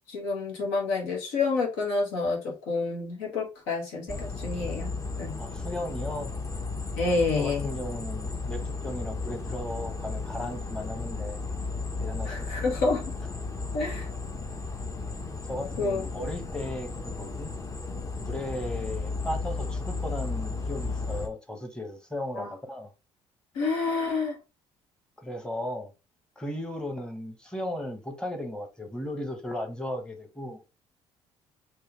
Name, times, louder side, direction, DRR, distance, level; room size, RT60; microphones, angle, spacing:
voice 1, 0.1-4.9 5.2-5.4 7.0-7.7 12.3-13.0 13.7-14.1 15.8-16.0 22.4-22.5 23.5-24.3, left 3 dB, 85° left, 1.5 m, -28 dB
sound 1, 4.1-21.3, left 3 dB, 25° left, 0.9 m, -34 dB
voice 2, 5.4-6.3 7.1-11.4 12.0-12.6 15.4-17.5 18.2-22.9 25.2-25.9 26.4-30.6, left 1 dB, 5° left, 1.2 m, -36 dB
4.7 x 2.8 x 3.1 m
supercardioid pair, 75°, 12 cm